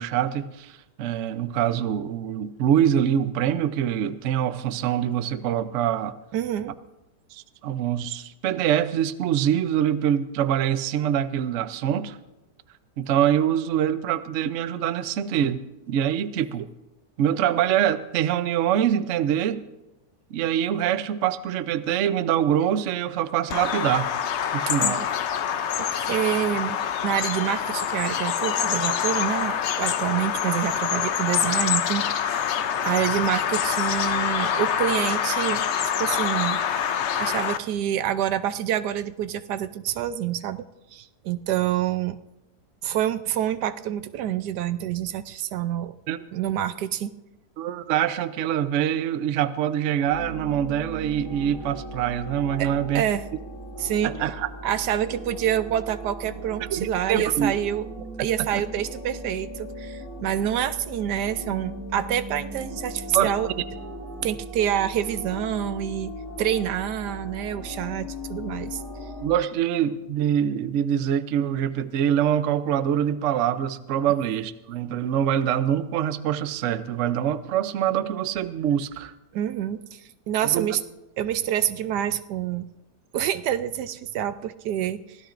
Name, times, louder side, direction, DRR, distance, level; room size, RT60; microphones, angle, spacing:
voice 1, 0.0-6.1 7.3-12.2 13.0-16.7 17.2-19.6 20.3-24.1 24.5-25.0 46.1-46.2 47.6-53.0 54.0-54.5 56.7-57.5 58.2-58.5 63.1-63.3 69.2-79.1 80.4-80.7, right 10 dB, 60° right, 12 dB, 0.8 m, -24 dB
voice 2, 6.3-6.7 24.7-25.1 25.7-32.3 32.8-35.6 36.0-36.6 37.2-40.6 40.9-42.2 42.8-45.9 46.3-47.1 52.6-52.7 52.9-53.2 53.8-54.1 54.6-57.8 58.2-63.5 64.2-66.1 66.4-68.8 79.3-80.0 80.3-80.8 81.2-82.7 83.1-85.2, right 11 dB, 80° right, 12 dB, 1.2 m, -27 dB
Bird vocalization bird call bird song, 23.5-37.6, left 8 dB, 65° left, 0.7 m, -26 dB
sound 1, 50.0-69.4, equal, 85° left, 7.0 m, -38 dB
24.0 x 16.0 x 2.6 m, 0.98 s
omnidirectional pair, 1.8 m